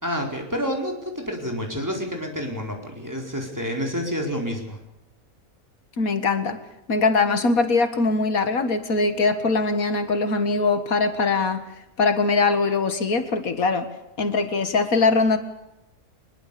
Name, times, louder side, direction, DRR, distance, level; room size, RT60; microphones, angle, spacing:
voice 1, 0.0-4.8, equal, 10° right, 1 dB, 4.5 m, -29 dB
voice 2, 6.0-6.6 6.9-11.6 12.0-13.9 14.2-15.4, left 3 dB, 80° left, 9 dB, 2.2 m, -21 dB
22.5 x 21.5 x 6.9 m, 0.90 s
omnidirectional pair, 1.5 m